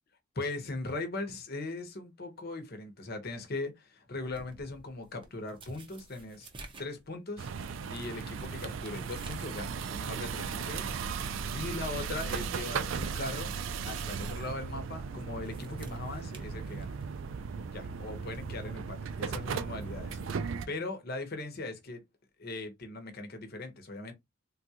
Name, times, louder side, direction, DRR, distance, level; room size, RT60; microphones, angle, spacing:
voice 1, 0.3-6.5 6.8-7.5 7.9-10.9 11.5-13.5 13.8-17.0 17.7-22.0 22.4-24.1, left 2 dB, 50° left, 0.9 m, -39 dB
sound 1, 4.2-9.6 10.0-10.1 10.6-10.7 11.2-13.4 13.8-14.0 15.2-17.2 18.3-18.5, right 3 dB, 25° right, 0.6 m, -53 dB
sound 2, 7.4-20.7, right 6 dB, 75° right, 0.4 m, -36 dB
3.6 x 2.3 x 2.8 m
head